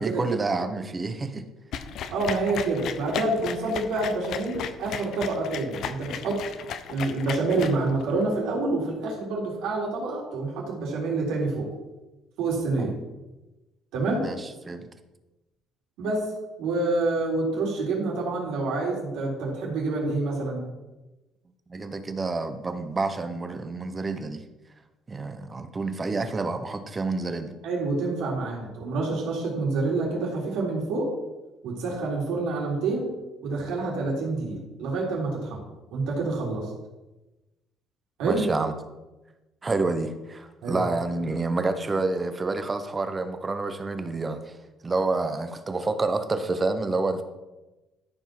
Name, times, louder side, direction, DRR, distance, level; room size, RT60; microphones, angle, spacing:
voice 1, 0.0-1.4 12.8-12.9 14.2-14.4 14.6-14.9 21.7-24.4 25.1-27.5 38.2-38.7 39.6-44.6 44.8-47.2, right 3 dB, 20° right, 9 dB, 1.0 m, -28 dB
sound 1, 1.7-8.2, left 8 dB, 60° left, 0.8 m, -35 dB
voice 2, 2.1-6.4 6.9-11.7 12.4-12.9 13.9-14.3 16.0-16.3 16.6-20.7 27.6-31.1 31.6-33.1 33.4-35.6 35.9-36.7 38.2-38.4 40.6-40.9, right 3 dB, 80° right, -3 dB, 3.6 m, -27 dB
13.5 x 5.4 x 6.0 m, 1.1 s
cardioid pair, 140°, 0 cm